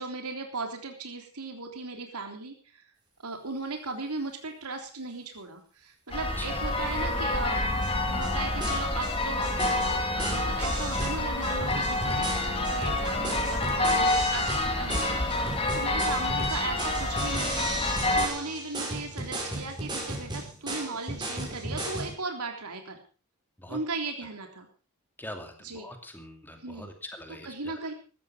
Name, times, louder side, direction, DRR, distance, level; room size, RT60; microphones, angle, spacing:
voice 1, 0.0-2.8 3.2-7.6 8.1-9.6 10.1-15.4 15.7-17.7 18.1-23.0 23.7-24.7 25.6-25.9 26.6-26.9 27.3-27.9, right 3 dB, 90° right, 4 dB, 3.5 m, -37 dB
sound 1, 6.1-18.3, left 2 dB, 25° left, 2.5 m, -28 dB
sound 2, 7.8-7.9 8.2-8.3 8.6-9.1 9.4-22.1, right 2 dB, 20° right, 5.2 m, -36 dB
voice 2, 25.2-27.9, left 1 dB, 10° left, 5 dB, 2.6 m, -43 dB
15.5 x 13.0 x 5.0 m, 0.37 s
head